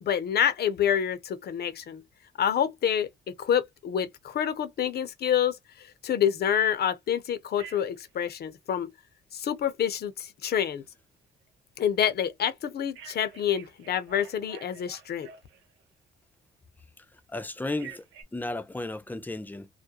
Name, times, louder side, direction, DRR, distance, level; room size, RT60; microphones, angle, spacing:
voice 1, 0.0-2.0 2.4-8.9 9.3-10.8 11.8-15.3, left 9 dB, 55° left, 0.6 m, -27 dB
Telephone, 7.6-8.1 12.9-15.8 17.7-18.2, right 7 dB, 85° right, 0.7 m, -48 dB
voice 2, 17.3-18.0 18.3-19.7, left 2 dB, 10° left, 0.5 m, -34 dB
2.3 x 2.1 x 2.8 m
cardioid pair, 90°, 20 cm